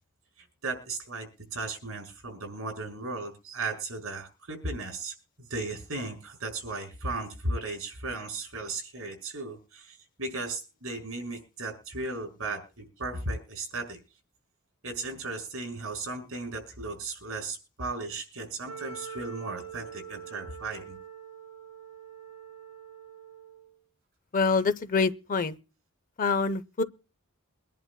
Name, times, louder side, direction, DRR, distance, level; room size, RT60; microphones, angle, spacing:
voice 1, 0.6-5.1 5.5-14.0 14.8-21.0, right 3 dB, 70° right, 6.0 m, -36 dB
Wind instrument woodwind instrument, 18.6-23.7, right 7 dB, 50° right, 6.8 m, -44 dB
voice 2, 24.3-25.6 26.2-26.8, left 4 dB, 40° left, 0.6 m, -26 dB
24.0 x 11.0 x 2.2 m
head